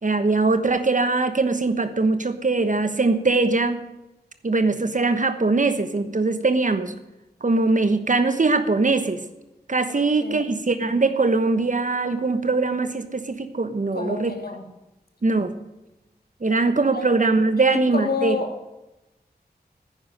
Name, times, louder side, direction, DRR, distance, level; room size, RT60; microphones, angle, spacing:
voice 1, 0.0-3.8 4.4-6.9 7.4-9.2 9.7-14.3 15.2-15.5 16.4-18.4, right 3 dB, 50° right, 10 dB, 1.2 m, -21 dB
voice 2, 9.9-10.5 13.9-14.7 16.9-17.1 17.7-18.5, left 4 dB, 70° left, 4 dB, 2.4 m, -30 dB
10.5 x 9.7 x 7.8 m, 0.97 s
wide cardioid pair, 75°, 17 cm